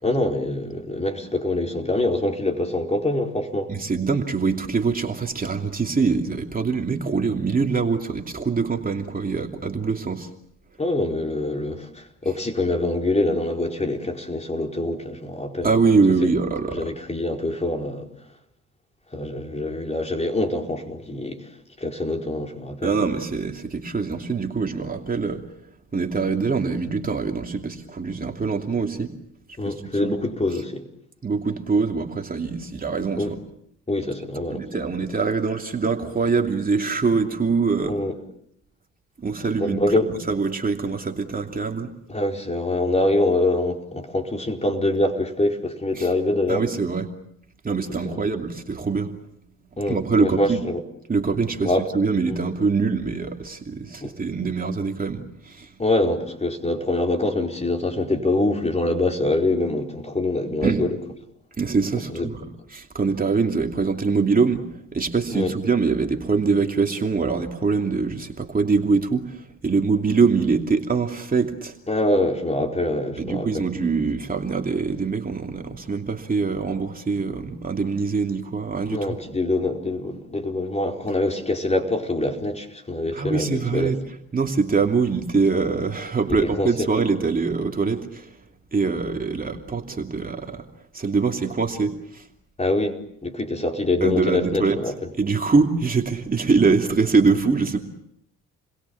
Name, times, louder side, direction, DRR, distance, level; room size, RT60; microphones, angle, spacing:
voice 1, 0.0-3.7 10.8-15.7 16.2-16.3 16.7-18.1 19.1-21.5 21.8-22.9 29.6-30.8 33.2-33.3 33.9-34.6 37.8-38.2 39.6-40.0 42.1-46.7 48.0-48.2 49.8-50.8 51.6-51.8 52.3-52.4 54.0-54.1 55.8-61.0 62.1-62.3 65.3-65.5 71.9-73.6 78.9-83.9 86.4-86.7 92.6-95.1, left 2 dB, 20° left, 2 dB, 4.7 m, -24 dB
voice 2, 3.7-10.3 15.6-16.9 22.8-25.4 25.9-29.1 29.6-30.2 31.2-33.3 34.5-38.0 39.2-41.9 46.0-46.1 46.5-47.1 47.6-49.1 49.9-50.6 51.1-55.7 60.6-60.8 61.6-62.4 62.7-64.6 64.9-71.8 73.2-79.1 83.1-84.0 84.3-88.4 88.7-90.6 90.9-92.3 94.0-94.8 95.2-97.8, right 4 dB, 30° right, 3 dB, 2.8 m, -23 dB
30.0 x 22.0 x 7.2 m, 0.73 s
cardioid pair, 90°, 30 cm